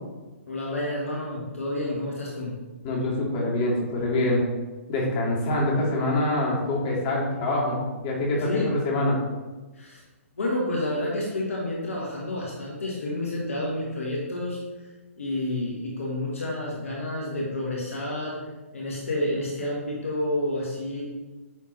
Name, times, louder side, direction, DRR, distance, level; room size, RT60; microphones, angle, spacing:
voice 1, 0.5-2.5 8.4-8.7 9.7-10.0 10.4-14.9 15.2-18.4 18.7-21.0, left 1 dB, 65° left, -3 dB, 1.5 m, -29 dB
voice 2, 2.8-4.4 4.9-7.8 8.0-9.1, left 1 dB, 35° left, -4 dB, 2.1 m, -25 dB
9.0 x 3.7 x 3.2 m, 1.2 s
figure-of-eight pair, 125°, 8 cm